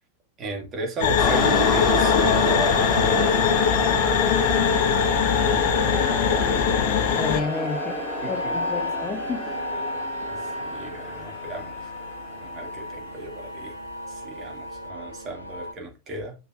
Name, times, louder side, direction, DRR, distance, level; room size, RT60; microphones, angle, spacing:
voice 1, 0.4-3.6 5.5-6.8 8.2-8.5 10.3-11.9 12.4-13.8 14.1-16.4, right 2 dB, 30° right, 2.1 m, -35 dB
sound 1, 1.0-7.4, left 9 dB, 55° left, 0.8 m, -22 dB
sound 2, 1.2-12.7, equal, ahead, 3.9 m, -29 dB
sound 3, 1.4-15.7, left 1 dB, 85° left, 1.0 m, -33 dB
voice 2, 7.2-7.9 8.2-9.5, left 5 dB, 25° left, 1.0 m, -31 dB
7.5 x 5.7 x 2.4 m
figure-of-eight pair, 90°, 0 cm